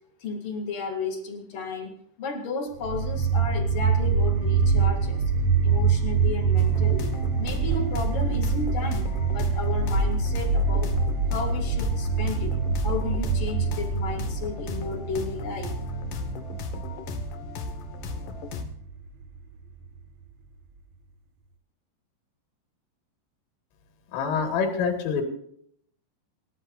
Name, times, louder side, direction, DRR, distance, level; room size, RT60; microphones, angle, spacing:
voice 1, 0.2-5.2 5.6-10.9 11.3-12.6 12.8-15.7, left 4 dB, 50° left, 1 dB, 4.1 m, -33 dB
sound 1, 2.8-19.8, right 5 dB, 85° right, 1.5 m, -25 dB
sound 2, 6.6-18.6, left 4 dB, 65° left, 2.2 m, -36 dB
voice 2, 24.1-25.2, left 6 dB, 85° left, 4 dB, 4.6 m, -26 dB
27.0 x 13.0 x 2.6 m, 0.67 s
omnidirectional pair, 5.6 m